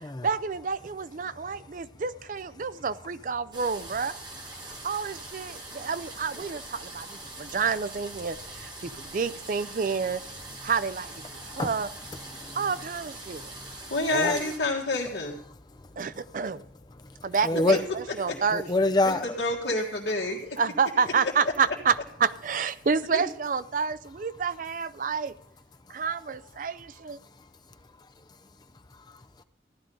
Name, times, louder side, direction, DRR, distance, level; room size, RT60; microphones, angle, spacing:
voice 1, 0.2-4.1 4.7-10.2 10.6-11.9 12.5-13.5 14.1-14.5 16.0-16.6 17.2-18.9 20.6-25.3 25.9-27.2, right 5 dB, 45° right, 0.4 m, -29 dB
sound 1, 3.5-14.6, right 2 dB, 25° right, 1.7 m, -43 dB
voice 2, 11.3-11.7 12.2-12.7 13.3-14.4 15.7-16.4 17.0-17.8 18.5-19.3 28.9-29.4, left 2 dB, 20° left, 0.5 m, -29 dB
voice 3, 13.9-15.4 18.3-18.4 19.0-19.1 19.4-20.6 23.1-23.2, left 2 dB, 65° left, 1.7 m, -28 dB
15.0 x 11.5 x 3.9 m
head